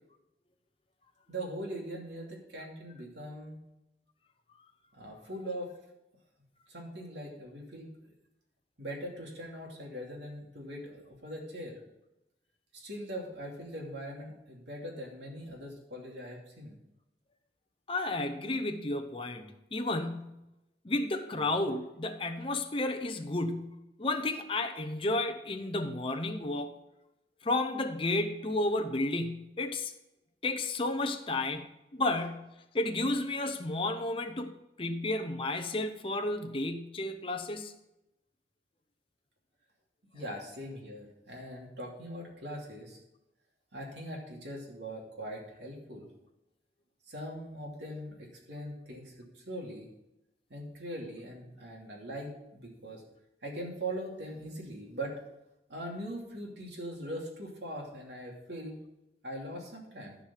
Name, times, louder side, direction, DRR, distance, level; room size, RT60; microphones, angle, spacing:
voice 1, 1.3-3.6 4.9-5.7 6.7-7.9 8.8-11.8 12.7-16.8 40.1-43.0 43.7-46.1 47.1-49.9 50.5-53.0 53.4-55.2 55.7-58.7 59.2-60.2, right 1 dB, 80° right, -1 dB, 2.7 m, -41 dB
voice 2, 17.9-20.4 20.8-26.7 27.4-29.9 30.4-37.7, left 2 dB, 30° left, 6 dB, 0.7 m, -32 dB
13.5 x 5.0 x 5.7 m, 0.92 s
head